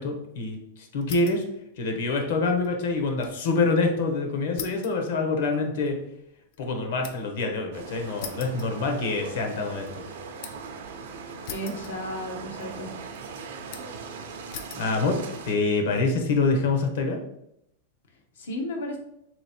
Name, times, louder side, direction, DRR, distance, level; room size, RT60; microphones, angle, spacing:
voice 1, 0.0-1.4 1.8-6.0 6.6-10.0 14.7-15.2 15.4-17.2, left 3 dB, 60° left, 3 dB, 1.0 m, -26 dB
sound 1, 1.0-1.5 1.9-3.4 3.7-3.8 4.6-7.4 8.2-9.3 9.7-10.7 11.4-12.3 12.6-13.2 13.7-14.1 14.5-14.9 15.6-16.0, left 7 dB, 45° left, 0.5 m, -42 dB
sound 2, 7.7-15.5, right 5 dB, 65° right, 0.6 m, -40 dB
voice 2, 11.5-12.9 18.4-19.0, left 1 dB, 85° left, 3 dB, 1.0 m, -33 dB
3.3 x 3.0 x 4.3 m, 0.78 s
supercardioid pair, 160°, 0 cm